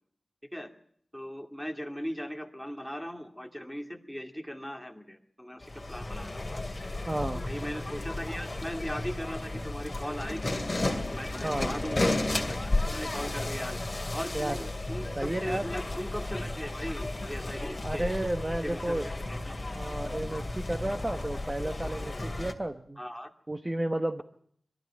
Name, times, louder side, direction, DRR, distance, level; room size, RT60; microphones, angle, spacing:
voice 1, 1.1-6.6 7.3-10.6 11.1-12.1 12.6-13.8 14.1-18.1 18.6-19.7 23.0-23.3, equal, 5° left, 4 dB, 2.4 m, -39 dB
sound 1, 5.6-22.5, left 2 dB, 35° left, 2.6 m, -33 dB
voice 2, 7.1-7.4 11.4-11.7 14.3-14.6 15.2-15.7 17.8-19.1 19.7-23.0 23.5-24.2, right 1 dB, 25° right, 7 dB, 1.1 m, -32 dB
22.0 x 13.5 x 8.7 m, 0.65 s
cardioid pair, 50°, 0 cm